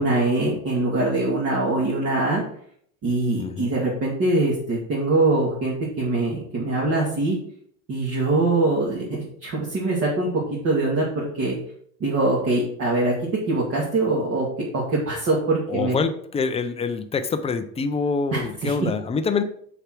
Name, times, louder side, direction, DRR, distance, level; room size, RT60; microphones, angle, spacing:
voice 1, 0.0-2.4 3.0-7.4 7.9-10.3 10.6-11.6 12.0-13.1 13.5-14.5 14.7-16.0 18.3-18.7, right 2 dB, 35° right, -4 dB, 2.1 m, -23 dB
voice 2, 3.4-3.7 15.7-19.4, left 5 dB, 15° left, 9 dB, 0.5 m, -26 dB
6.6 x 4.8 x 5.9 m, 0.64 s
cardioid pair, 145°, 40 cm